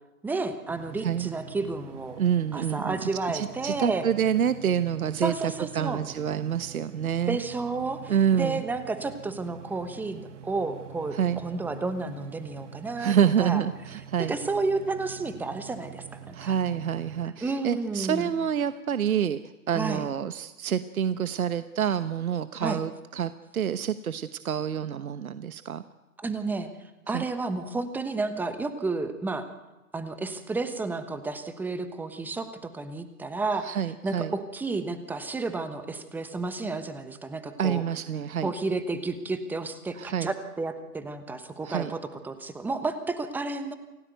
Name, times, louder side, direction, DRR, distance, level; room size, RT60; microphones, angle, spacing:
voice 1, 0.2-2.2 2.5-4.1 5.2-6.0 7.3-13.1 13.4-13.6 14.3-16.6 17.4-18.3 19.7-20.1 22.6-22.8 26.2-26.7 27.1-29.5 29.9-33.8 34.0-37.8 38.4-43.7, right 3 dB, 5° right, 10 dB, 1.1 m, -31 dB
sound 1, 0.7-17.3, right 9 dB, 50° right, 1.7 m, -45 dB
voice 2, 2.2-3.0 3.3-7.4 8.1-8.6 11.1-11.4 13.0-14.3 16.3-19.4 19.7-25.8 27.1-27.2 33.6-34.3 37.6-38.5 39.9-40.3 41.6-41.9, right 8 dB, 65° right, 12 dB, 1.1 m, -27 dB
28.0 x 17.0 x 9.3 m, 1.1 s
hypercardioid pair, 135°, 45 cm